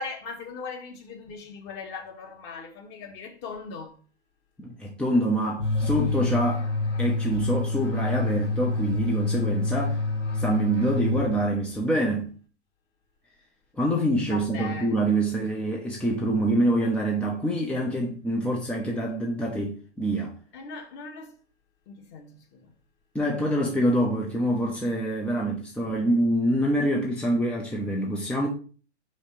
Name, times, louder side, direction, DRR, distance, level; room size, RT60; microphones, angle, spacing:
voice 1, 0.0-4.0 14.2-15.0 20.5-21.3 21.9-22.7, left 4 dB, 30° left, 2.0 m, -39 dB
voice 2, 4.6-6.7 7.0-10.0 10.3-12.3 13.8-20.3 23.1-28.5, right 1 dB, 5° left, 0.9 m, -25 dB
sound 1, 5.6-11.7, left 3 dB, 90° left, 1.5 m, -27 dB
6.2 x 5.3 x 5.7 m
figure-of-eight pair, 115°, 35 cm